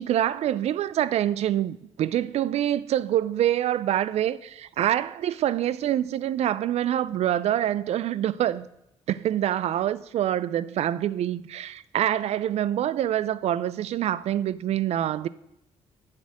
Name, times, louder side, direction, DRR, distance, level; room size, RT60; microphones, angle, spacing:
voice 1, 0.0-8.7 9.1-15.3, right 11 dB, 65° right, 0.4 m, -26 dB
7.2 x 6.6 x 7.4 m
cardioid pair, 95°, 12 cm